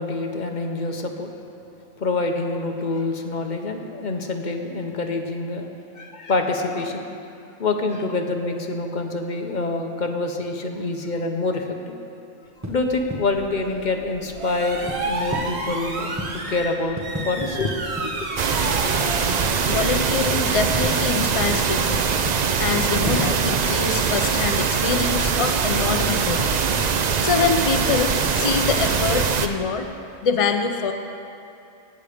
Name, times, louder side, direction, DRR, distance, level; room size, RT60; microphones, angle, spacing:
voice 1, 0.0-1.3 2.0-7.0 7.6-12.0 12.7-17.7 18.1-18.3, left 3 dB, 35° left, 3 dB, 1.0 m, -26 dB
sound 1, 12.4-19.9 20.1-23.5, equal, 15° right, 0.7 m, -36 dB
sound 2, 12.6-21.2, right 2 dB, 55° right, 1.5 m, -32 dB
sound 3, 18.4-29.5, right 6 dB, 70° right, 0.4 m, -22 dB
voice 2, 19.7-22.1 22.6-26.6 27.2-29.9 30.2-30.9, left 5 dB, 65° left, 6 dB, 0.3 m, -24 dB
17.0 x 8.2 x 5.1 m, 2.6 s
omnidirectional pair, 1.4 m